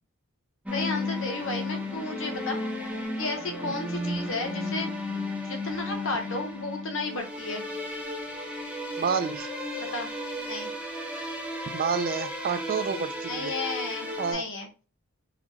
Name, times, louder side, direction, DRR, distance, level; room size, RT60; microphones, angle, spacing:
voice 1, 0.7-2.6 3.2-4.9 5.4-7.6 9.8-10.1 10.4-10.7 13.3-14.7, left 2 dB, 60° left, 4 dB, 0.8 m, -33 dB
sound 1, 0.7-14.3, left 1 dB, 5° right, 0.6 m, -34 dB
voice 2, 9.0-9.5 11.7-13.5 14.2-14.4, right 6 dB, 40° right, 11 dB, 0.3 m, -29 dB
4.1 x 2.9 x 2.8 m, 0.33 s
head